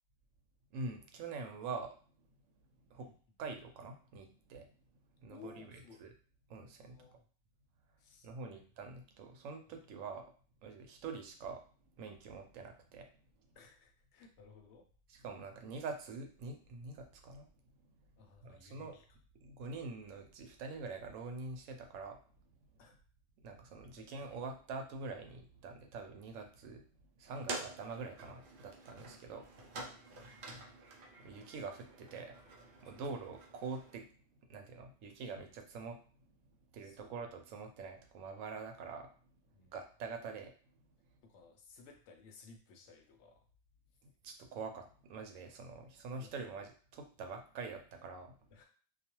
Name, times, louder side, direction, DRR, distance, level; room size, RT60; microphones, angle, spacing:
voice 1, 0.7-2.0 2.9-3.1 3.4-4.7 5.2-6.1 6.5-7.1 8.2-10.2 10.6-11.6 12.0-13.1 15.1-17.5 17.8-17.9 18.4-18.9 19.4-22.2 23.4-26.8 27.2-29.5 31.2-32.3 32.8-34.1 34.5-36.0 36.7-39.1 39.7-40.5 44.2-48.4, right 4 dB, 85° right, 5 dB, 1.0 m, -45 dB
voice 2, 5.3-6.0 6.9-7.2 8.0-8.6 13.6-14.9 18.2-19.0 22.8-23.0 24.0-24.3 27.4-27.5 30.0-30.6 32.8-33.0 36.8-37.2 39.5-39.8 41.2-43.4 46.2-46.5 48.5-48.6, left 5 dB, 70° left, 4 dB, 0.8 m, -58 dB
sound 1, 27.3-34.0, right 2 dB, 60° right, 0.6 m, -48 dB
2.4 x 2.3 x 2.9 m, 0.41 s
omnidirectional pair, 1.3 m